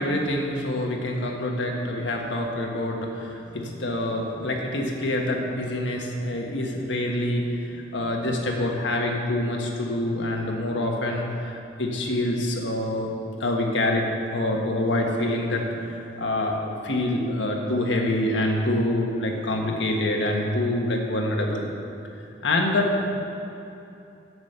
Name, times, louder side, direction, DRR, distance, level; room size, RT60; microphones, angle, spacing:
voice 1, 0.0-13.1 13.4-21.7 22.4-23.0, left 1 dB, 90° left, 1 dB, 1.4 m, -26 dB
8.3 x 7.9 x 6.8 m, 2.8 s
head